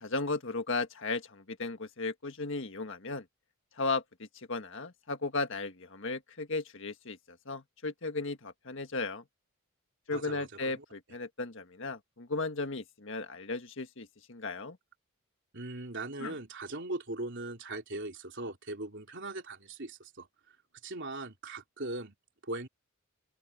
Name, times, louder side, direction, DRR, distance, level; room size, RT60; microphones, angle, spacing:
voice 1, 0.0-3.2 3.8-9.2 10.1-14.8 16.2-16.3, left 3 dB, 60° left, 1.7 m, -36 dB
voice 2, 10.1-10.8 15.5-20.3 20.8-22.2 22.4-22.7, right 2 dB, 55° right, 3.6 m, -39 dB
open air
head